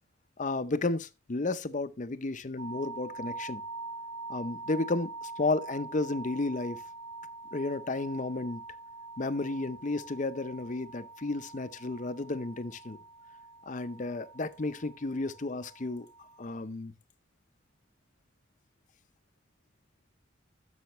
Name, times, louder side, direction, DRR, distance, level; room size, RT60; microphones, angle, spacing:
voice 1, 0.4-3.6 4.3-6.8 7.5-8.6 9.2-13.0 13.7-16.1 16.4-16.9, left 2 dB, 40° left, 0.6 m, -32 dB
sound 1, 2.6-16.6, right 3 dB, 60° right, 1.2 m, -44 dB
11.5 x 7.0 x 3.0 m
head